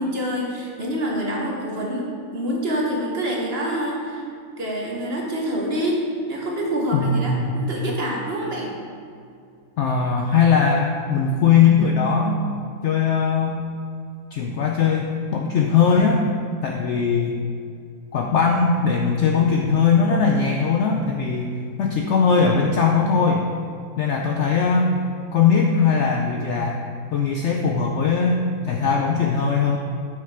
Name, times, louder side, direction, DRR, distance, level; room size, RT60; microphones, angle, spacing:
voice 1, 0.0-2.1 2.3-4.2 4.6-8.7, equal, 45° right, -2 dB, 1.0 m, -26 dB
voice 2, 6.9-7.5 9.8-12.4 12.8-13.6 14.3-16.2 16.6-17.3 18.1-23.4 24.0-24.9 25.3-26.8 27.1-29.8, left 5 dB, 70° left, 1 dB, 0.7 m, -20 dB
6.6 x 6.4 x 3.4 m, 2.4 s
omnidirectional pair, 1.7 m